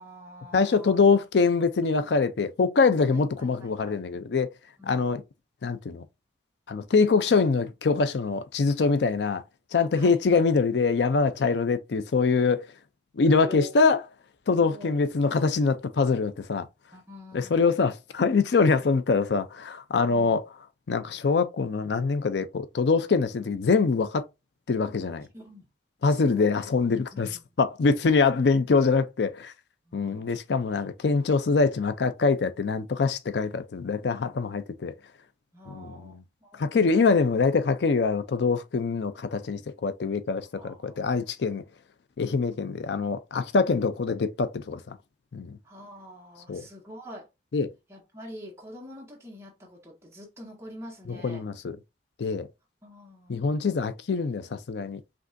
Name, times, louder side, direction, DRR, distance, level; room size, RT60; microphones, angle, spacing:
voice 1, 0.0-1.0 3.1-4.0 4.8-5.1 9.9-10.2 13.2-13.7 14.6-14.9 16.9-17.6 20.0-20.4 25.2-25.7 26.1-26.5 27.1-27.4 29.9-30.4 35.5-36.7 40.5-41.1 45.6-47.3 47.9-51.4 52.8-53.5, left 1 dB, 15° right, 1.6 m, -46 dB
voice 2, 0.5-4.5 4.9-5.2 5.6-6.0 6.7-9.4 9.7-12.7 13.2-14.0 14.5-16.7 17.3-20.4 20.9-24.2 24.7-25.3 26.0-27.3 27.6-29.5 29.9-34.9 35.7-36.2 36.6-41.6 42.2-45.0 45.3-45.6 46.5-46.7 47.5-47.7 51.1-51.8 52.2-52.5 53.3-55.0, left 4 dB, 80° left, 0.5 m, -24 dB
5.1 x 3.5 x 2.6 m
head